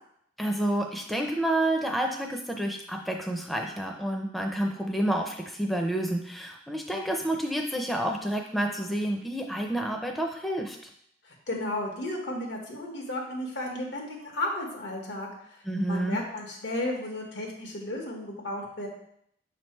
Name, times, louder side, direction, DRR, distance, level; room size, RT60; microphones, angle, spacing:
voice 1, 0.4-10.8 15.6-16.2, right 1 dB, ahead, 2 dB, 0.4 m, -29 dB
voice 2, 11.2-15.3 15.9-18.9, left 1 dB, 90° left, 0 dB, 1.4 m, -33 dB
6.6 x 3.3 x 4.3 m, 0.70 s
head